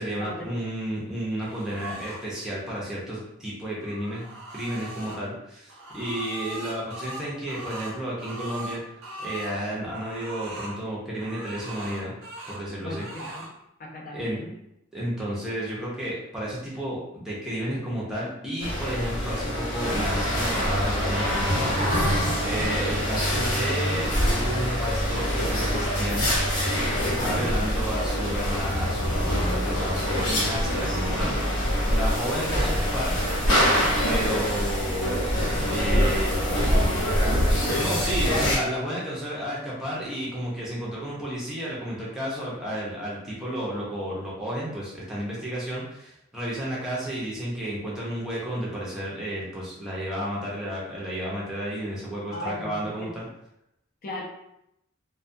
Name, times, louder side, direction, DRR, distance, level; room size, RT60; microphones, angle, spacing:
voice 1, 0.0-4.2 4.5-8.8 9.2-12.1 12.5-13.1 14.1-14.4 14.9-26.3 27.0-33.2 34.0-35.2 35.7-36.6 37.8-53.3, equal, 5° right, -7 dB, 0.6 m, -32 dB
sound 1, 1.4-2.2 3.6-5.2 5.7-9.6 9.9-10.8 11.2-12.6 12.9-13.5, right 1 dB, 85° right, 0.6 m, -40 dB
voice 2, 12.8-13.4 13.8-14.5 22.6-22.8 27.2-27.6 32.5-32.8 35.8-36.7 52.3-53.1 54.0-54.2, equal, 40° left, -2 dB, 0.6 m, -36 dB
sound 2, 18.6-38.6, equal, 85° left, 0.9 m, -25 dB
2.3 x 2.2 x 2.6 m, 0.81 s
head